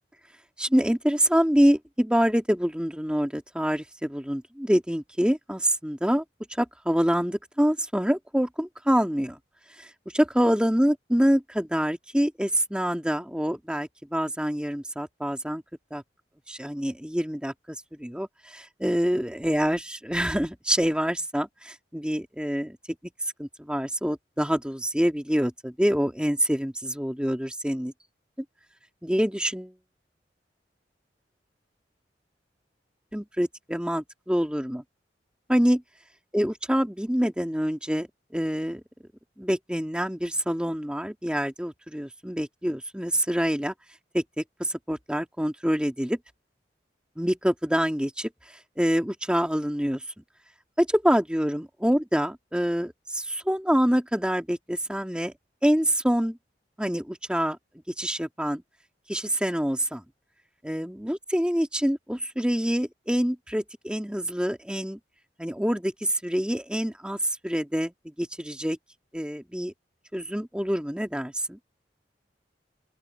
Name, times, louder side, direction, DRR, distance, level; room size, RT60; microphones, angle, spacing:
voice 1, 0.6-6.2 6.6-9.4 9.8-15.6 15.9-16.0 16.5-22.8 23.4-27.9 29.0-29.7 33.1-34.8 35.5-35.8 36.3-38.1 38.3-38.8 39.4-43.7 44.1-46.2 47.2-50.0 50.8-55.3 55.6-56.4 56.8-57.6 58.0-58.6 59.1-60.0 60.6-65.0 65.4-68.8 69.1-69.7 70.1-71.6, equal, 5° right, 1.7 m, -26 dB
open air
head